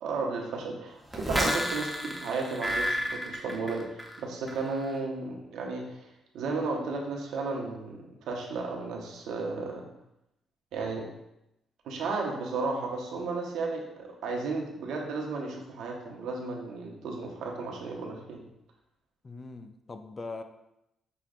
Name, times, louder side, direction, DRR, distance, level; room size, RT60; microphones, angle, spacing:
voice 1, 0.0-6.1 6.3-9.9 10.7-11.1 11.8-18.4, right 3 dB, 80° right, 0.8 m, -34 dB
sound 1, 1.1-4.2 4.5-4.9, equal, ahead, 0.7 m, -31 dB
voice 2, 19.2-20.4, left 3 dB, 30° left, 0.4 m, -41 dB
5.8 x 2.2 x 3.7 m
cardioid pair, 90°, 0 cm